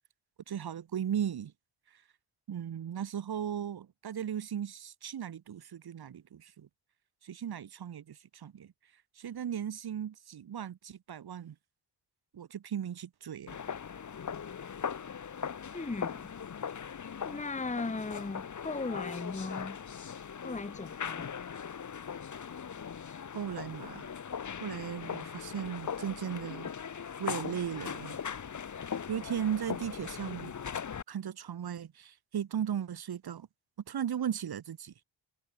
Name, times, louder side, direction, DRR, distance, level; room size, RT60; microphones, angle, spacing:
voice 1, 0.5-1.5 1.9-2.0 2.5-6.7 7.2-8.7 9.2-11.6 12.3-13.6 23.3-24.1 24.6-26.7 27.2-28.2 29.1-30.5 31.1-33.5 33.9-34.9, right 9 dB, 50° right, 2.2 m, -37 dB
sound 1, 13.5-31.0, left 7 dB, 40° left, 2.2 m, -40 dB
voice 2, 15.7-16.3 17.3-19.8 20.4-21.3, left 3 dB, 15° left, 1.9 m, -37 dB
wide cardioid pair, 175°, 47 cm